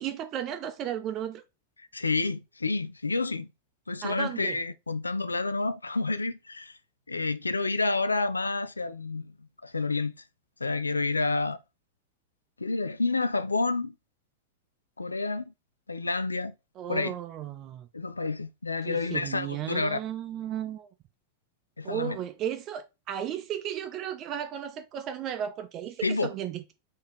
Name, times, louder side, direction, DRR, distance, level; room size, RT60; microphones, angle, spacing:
voice 1, 0.0-1.4 4.0-4.6 16.8-17.9 18.8-20.9 21.8-26.7, right 10 dB, 35° right, 0.6 m, -34 dB
voice 2, 1.8-3.5 3.9-6.8 7.1-9.3 9.6-10.1 10.6-11.6 12.6-13.9 15.0-15.5 15.9-16.5 16.9-17.1 17.9-20.0 21.8-22.2 26.0-26.3, left 3 dB, 80° left, 0.3 m, -29 dB
3.9 x 3.1 x 4.3 m
figure-of-eight pair, 90°, 0 cm